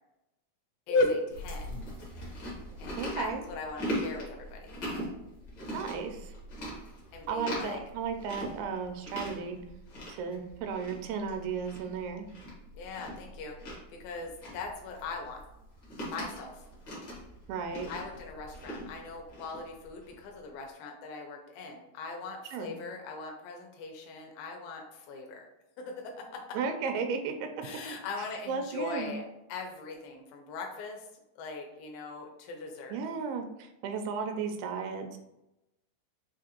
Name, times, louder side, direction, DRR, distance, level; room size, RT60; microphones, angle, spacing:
voice 1, 0.9-1.8 2.8-4.7 7.1-7.8 12.7-15.4 16.0-16.7 17.9-25.5 25.8-26.6 27.6-29.2 29.5-31.1 31.4-33.0, left 3 dB, 80° left, 2 dB, 2.5 m, -38 dB
Chewing mastication, 1.3-20.2, equal, 60° left, 1.1 m, -41 dB
voice 2, 3.0-3.4 5.7-6.3 7.3-9.6 10.1-12.3 17.5-17.9 22.5-22.8 26.5-27.7 28.2-29.1 32.9-35.2, right 5 dB, 90° right, 5 dB, 2.4 m, -34 dB
6.0 x 2.5 x 2.9 m, 0.91 s
omnidirectional pair, 4.2 m